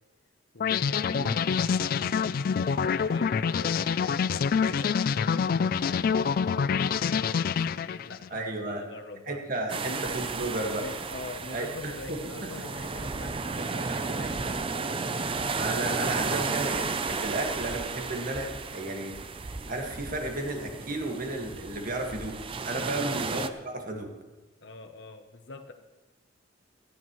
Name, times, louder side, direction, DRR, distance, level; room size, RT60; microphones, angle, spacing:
voice 1, 0.5-1.6 2.5-9.4 9.8-10.1 10.8-14.7 22.9-23.2 24.6-25.7, left 3 dB, 65° left, 6 dB, 0.9 m, -44 dB
sound 1, 0.6-8.3, left 6 dB, 50° left, 0.3 m, -26 dB
voice 2, 1.1-1.4 8.3-8.8 9.3-10.9 11.5-12.7 13.9-14.2 15.6-19.2 19.7-22.4 22.6-24.1, right 2 dB, 50° right, 2 dB, 1.9 m, -33 dB
sound 2, 9.7-23.5, right 4 dB, 30° right, 0.5 m, -33 dB
17.0 x 14.0 x 3.1 m, 1.2 s
head